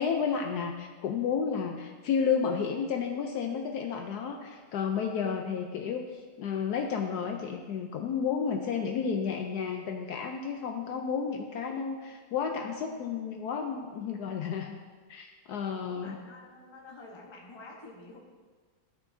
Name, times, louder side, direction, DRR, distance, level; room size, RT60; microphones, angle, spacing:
voice 1, 0.0-14.8 15.1-16.2, left 6 dB, 85° left, 3 dB, 0.8 m, -32 dB
voice 2, 15.7-18.2, left 2 dB, 25° left, -2 dB, 0.6 m, -48 dB
13.0 x 5.7 x 2.7 m, 1.5 s
omnidirectional pair, 2.3 m